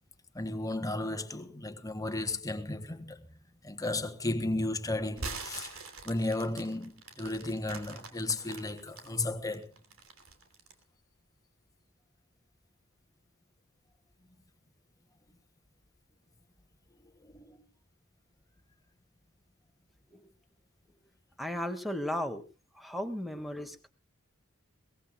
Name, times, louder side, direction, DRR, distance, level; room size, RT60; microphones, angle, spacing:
voice 1, 0.3-3.4 3.6-9.7 17.2-17.6, left 2 dB, 15° left, 1.4 m, -34 dB
sound 1, 5.1-9.1 9.5-10.8, right 4 dB, 70° right, 3.0 m, -43 dB
voice 2, 21.4-22.4 22.7-23.9, left 1 dB, ahead, 1.6 m, -35 dB
22.0 x 18.5 x 2.2 m
head